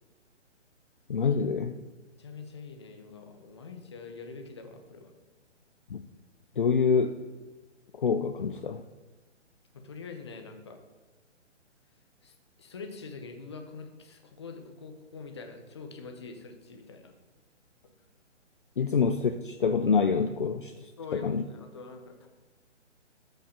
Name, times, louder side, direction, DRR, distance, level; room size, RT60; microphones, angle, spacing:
voice 1, 1.1-1.8 5.9-6.0 6.6-7.2 8.0-8.8 18.8-21.4, left 5 dB, 45° left, 8 dB, 0.4 m, -26 dB
voice 2, 2.2-5.1 9.7-10.8 12.2-12.3 12.6-17.1 18.8-18.9 21.0-22.3, left 4 dB, 25° left, 5 dB, 0.8 m, -44 dB
12.5 x 5.6 x 5.1 m, 1.2 s
hypercardioid pair, 170°, 36 cm